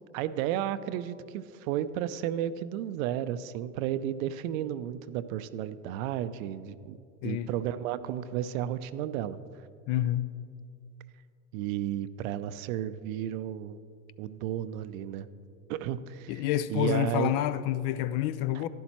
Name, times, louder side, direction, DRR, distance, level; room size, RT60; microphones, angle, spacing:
voice 1, 0.1-7.0 7.2-9.4 11.5-13.8 14.2-15.3 15.7-16.4 16.7-17.3 18.5-18.6, right 11 dB, 65° right, 14 dB, 0.5 m, -33 dB
voice 2, 9.9-10.3 16.3-18.7, left 12 dB, 50° left, 15 dB, 0.4 m, -28 dB
11.5 x 11.0 x 3.0 m, 2.4 s
hypercardioid pair, 85°, 45 cm